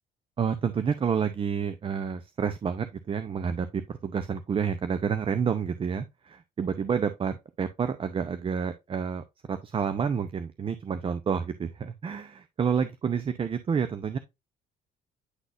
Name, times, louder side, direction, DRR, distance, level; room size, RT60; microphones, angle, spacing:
voice 1, 0.4-14.2, right 6 dB, 30° right, 0.7 m, -29 dB
9.7 x 4.0 x 2.5 m
cardioid pair, 110°, 17 cm